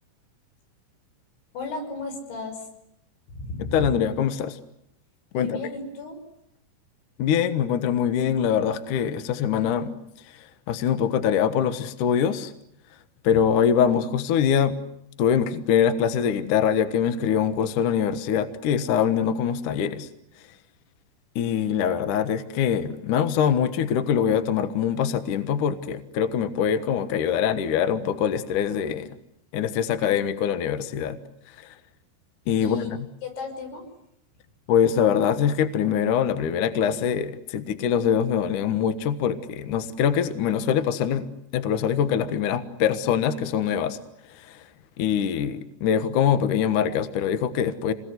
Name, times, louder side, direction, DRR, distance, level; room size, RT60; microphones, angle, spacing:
voice 1, 1.5-2.7 3.3-4.0 5.3-6.2 32.6-32.9 33.2-33.8, left 3 dB, 85° left, 5 dB, 8.4 m, -34 dB
voice 2, 3.7-4.6 5.3-5.6 7.2-9.9 10.3-12.5 13.2-14.7 15.2-20.1 21.4-29.2 29.5-31.2 31.5-31.7 32.5-33.0 34.7-44.0 44.3-44.7 45.0-47.9, left 8 dB, 60° left, 11 dB, 2.3 m, -23 dB
29.0 x 21.0 x 9.6 m, 0.76 s
omnidirectional pair, 5.2 m